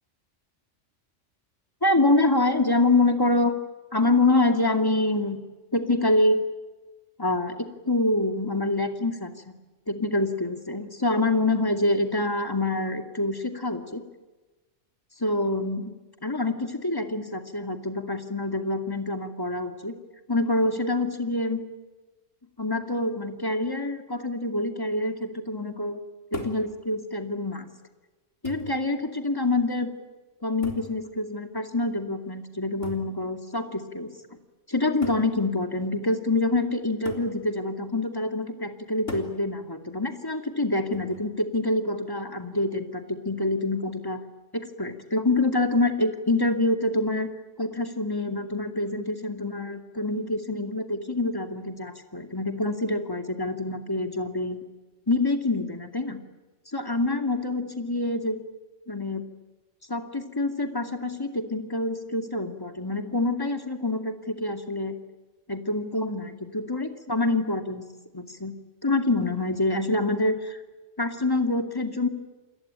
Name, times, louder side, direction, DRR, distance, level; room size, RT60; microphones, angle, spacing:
voice 1, 1.8-3.5 3.9-5.4 5.7-6.4 7.2-9.5 9.9-14.0 15.2-15.9 16.2-20.0 20.3-21.6 22.6-26.0 26.3-27.7 28.4-29.9 30.4-34.1 34.7-44.2 44.5-47.3 47.6-54.6 55.1-56.2 56.7-58.4 58.9-59.3 59.9-65.0 65.5-66.3 66.5-67.8 68.1-68.5 68.8-70.6 71.0-72.1, left 2 dB, 20° left, 6 dB, 2.4 m, -26 dB
sound 1, 26.3-26.7 27.7-27.8 28.4-28.8 30.6-31.0 32.8-33.1 34.2-34.3 35.0-35.3 37.1-37.3 39.1-39.4 40.9-41.3, left 2 dB, 75° left, 4.1 m, -38 dB
28.5 x 21.5 x 9.0 m, 1.2 s
omnidirectional pair, 1.3 m